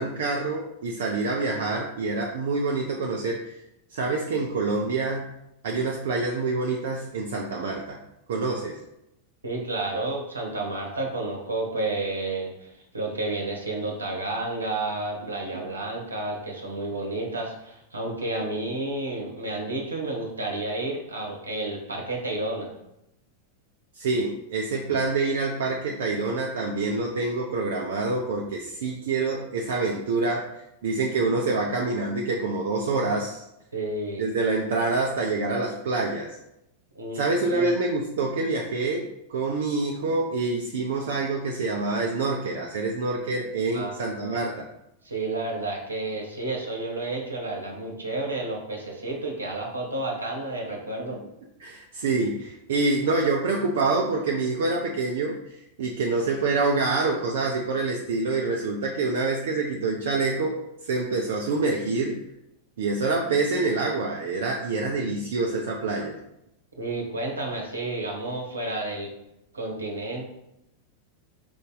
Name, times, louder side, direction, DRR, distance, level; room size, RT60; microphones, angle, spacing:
voice 1, 0.0-3.6 3.9-5.3 5.6-8.0 8.3-8.8 15.5-15.6 24.0-33.4 34.2-36.4 37.1-44.7 51.6-62.2 62.8-66.2, right 3 dB, 60° right, 0 dB, 0.5 m, -26 dB
voice 2, 9.4-22.7 33.7-34.2 36.9-37.7 43.7-44.4 45.0-51.2 66.8-69.1 69.5-70.3, right 2 dB, 80° right, 0 dB, 0.9 m, -31 dB
5.0 x 2.7 x 3.7 m, 0.85 s
figure-of-eight pair, 90°, 0 cm